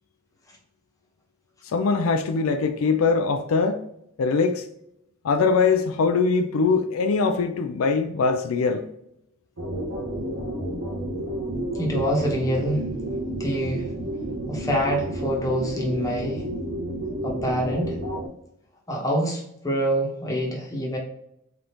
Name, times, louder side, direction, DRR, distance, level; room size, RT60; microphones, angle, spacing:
voice 1, 1.6-3.9 4.2-4.6 5.2-8.9, left 4 dB, 75° left, 0.4 m, -22 dB
sound 1, 9.6-18.3, right 1 dB, 85° right, 1.2 m, -31 dB
voice 2, 11.7-12.9 13.4-13.9 14.5-16.4 17.2-18.0 18.9-21.0, equal, 15° left, 1.1 m, -26 dB
3.8 x 3.4 x 2.9 m
head